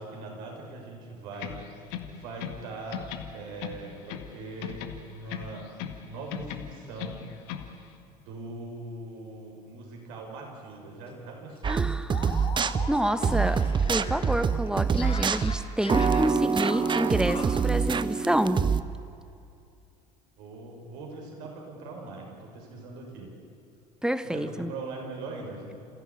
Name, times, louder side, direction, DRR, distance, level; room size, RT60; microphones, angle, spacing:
voice 1, 0.0-1.6 2.1-3.0 3.3-5.7 6.0-7.2 8.0-11.8 20.4-23.3 24.2-25.7, right 3 dB, 60° right, 1 dB, 6.2 m, -41 dB
sound 1, 1.3-2.7 2.9-4.3 4.6-6.0 6.3-7.7, left 10 dB, 55° left, 1.9 m, -38 dB
sound 2, 10.7-10.8 11.1-11.2 11.5-17.6, left 4 dB, 30° left, 3.8 m, -40 dB
sound 3, 11.6-18.8, right 6 dB, 25° right, 0.8 m, -26 dB
voice 2, 11.7-12.4 12.9-18.7 24.0-24.7, right 1 dB, 5° right, 13 dB, 1.1 m, -28 dB
28.5 x 16.0 x 8.7 m, 2.6 s
figure-of-eight pair, 65°, 21 cm